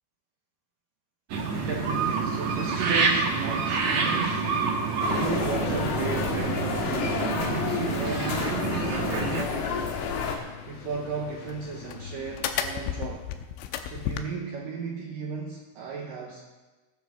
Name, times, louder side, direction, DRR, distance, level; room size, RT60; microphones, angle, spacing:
sound 1, 1.3-9.4, right 4 dB, 60° right, 1.9 m, -28 dB
voice 1, 1.5-10.0 10.7-13.3 13.8-16.4, right 5 dB, 80° right, 0 dB, 2.0 m, -35 dB
sound 2, 5.0-10.4, left 5 dB, 70° left, 3.2 m, -30 dB
sound 3, 8.3-14.2, left 9 dB, 90° left, 3.2 m, -36 dB
19.0 x 10.0 x 3.9 m, 1.2 s
omnidirectional pair, 5.5 m